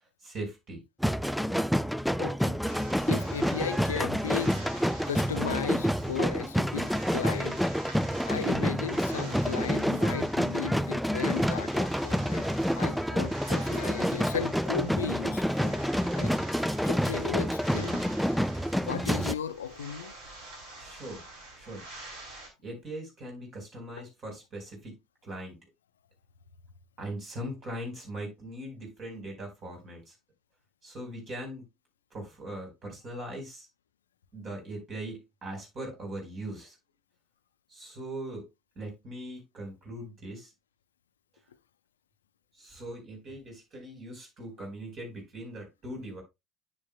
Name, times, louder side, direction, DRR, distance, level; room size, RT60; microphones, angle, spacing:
voice 1, 0.2-0.8 8.4-8.7 20.8-21.2 21.6-21.9 22.6-25.0 25.2-25.6 27.0-30.1 30.8-31.7 32.1-33.7 34.3-36.8 37.7-38.5 38.7-40.5 42.5-46.2, right 1 dB, 45° right, 4.6 m, -40 dB
sound 1, 1.0-19.4, equal, ahead, 0.4 m, -28 dB
voice 2, 2.2-2.6 3.1-7.6 8.3-12.4 12.8-15.8 16.1-16.3 16.8-18.0 18.8-20.1, left 8 dB, 80° left, 0.5 m, -36 dB
sound 2, 2.6-22.5, right 2 dB, 70° right, 3.0 m, -47 dB
9.9 x 6.5 x 2.3 m
figure-of-eight pair, 60°, 0 cm